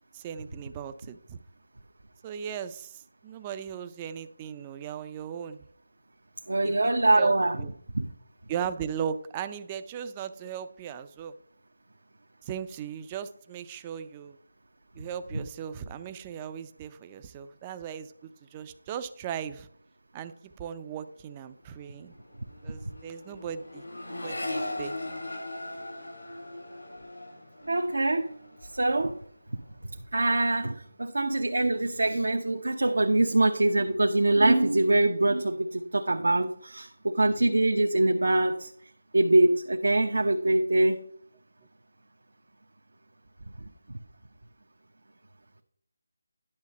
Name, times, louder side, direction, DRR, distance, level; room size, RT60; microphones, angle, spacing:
voice 1, 0.1-1.4 2.2-5.7 6.6-7.7 8.5-11.3 12.4-14.4 14.9-19.7 20.1-22.1 22.6-25.0, right 8 dB, 20° right, 11 dB, 0.5 m, -38 dB
voice 2, 6.5-7.6 7.9-8.1 27.7-28.3 28.6-29.2 29.8-38.7 39.1-41.0 43.6-44.0, right 2 dB, 80° right, 3 dB, 1.0 m, -24 dB
Accelerating revving vroom, 21.2-21.5 21.7-29.3 29.6-30.2, left 1 dB, 90° left, 4.7 m, -39 dB
10.5 x 6.4 x 4.1 m, 0.62 s
figure-of-eight pair, 165°, 0 cm